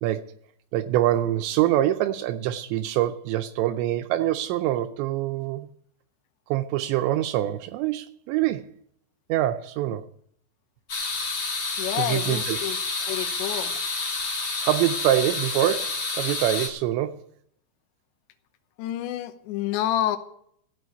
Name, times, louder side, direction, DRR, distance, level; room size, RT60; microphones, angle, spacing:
voice 1, 0.0-0.4 0.7-5.7 6.5-8.7 9.3-10.1 12.0-12.6 13.0-13.1 14.6-17.2, right 13 dB, 80° right, 2.7 m, -25 dB
sound 1, 10.9-16.7, left 3 dB, 50° left, 1.2 m, -29 dB
voice 2, 11.8-12.8 13.1-13.7 18.8-20.2, left 12 dB, 75° left, 3.2 m, -28 dB
15.5 x 6.1 x 8.1 m
omnidirectional pair, 5.3 m